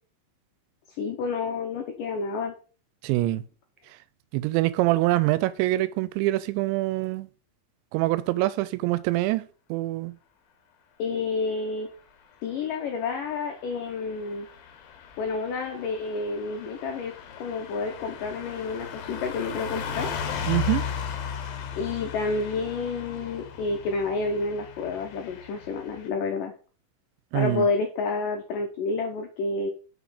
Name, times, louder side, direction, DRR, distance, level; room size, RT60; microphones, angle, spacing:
voice 1, 1.0-2.6 11.0-11.9 12.4-14.5 15.2-20.1 21.7-26.5 27.3-29.7, left 4 dB, 85° left, 1.9 m, -29 dB
voice 2, 3.0-3.4 4.3-7.3 7.9-9.4 9.7-10.1 20.5-20.9 27.3-27.6, right 17 dB, 90° right, 2.9 m, -24 dB
Car passing by / Truck, 13.1-26.1, left 7 dB, 70° left, 2.5 m, -36 dB
6.3 x 5.2 x 4.9 m
omnidirectional pair, 5.1 m